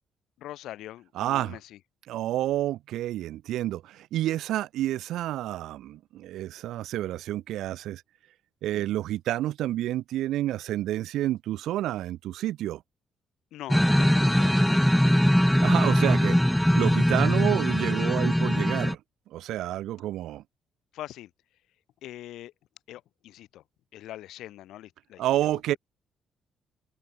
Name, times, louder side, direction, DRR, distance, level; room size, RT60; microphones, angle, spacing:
voice 1, 0.4-1.8 13.5-14.9 20.9-21.3 22.0-22.5 22.9-23.6 23.9-25.8, left 14 dB, 85° left, 6.4 m, -42 dB
voice 2, 1.2-1.6 2.1-8.0 8.6-12.8 15.6-19.0 19.3-20.4 25.2-25.7, right 14 dB, 85° right, 0.4 m, -29 dB
sound 1, 13.7-18.9, equal, ahead, 0.3 m, -21 dB
cardioid pair, 90°, 0 cm